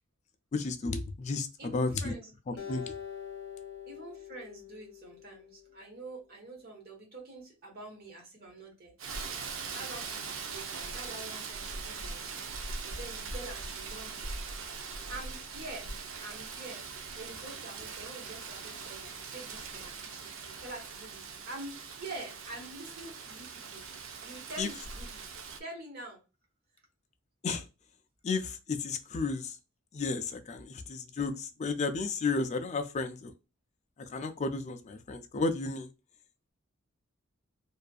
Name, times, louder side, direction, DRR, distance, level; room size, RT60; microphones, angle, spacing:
voice 1, 0.5-2.1 2.5-2.9 24.6-24.7 27.4-27.6 28.2-29.5 29.9-33.3 34.1-35.9, left 3 dB, 35° left, 7 dB, 0.3 m, -33 dB
voice 2, 1.6-2.8 3.9-8.9 9.4-12.4 12.8-14.2 15.1-15.9 16.2-16.8 17.2-23.8 24.2-25.2 25.6-26.2, right 2 dB, 50° right, -1 dB, 1.1 m, -46 dB
Acoustic guitar, 2.6-5.9, left 8 dB, 70° left, 0.7 m, -44 dB
Rain, 9.0-25.6, right 4 dB, 75° right, 0.5 m, -41 dB
2.6 x 2.4 x 2.3 m, 0.28 s
head